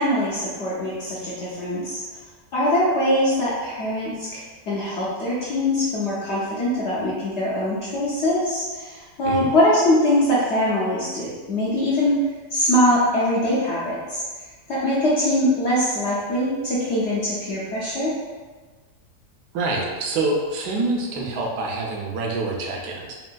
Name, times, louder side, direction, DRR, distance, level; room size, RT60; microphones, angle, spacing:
voice 1, 0.0-2.2 2.5-4.4 4.7-12.2 12.5-14.2 14.7-18.1, left 1 dB, 70° left, -7 dB, 0.6 m, -22 dB
voice 2, 19.5-23.1, right 2 dB, 80° right, -1 dB, 1.2 m, -26 dB
3.4 x 2.7 x 2.2 m, 1.4 s
omnidirectional pair, 1.8 m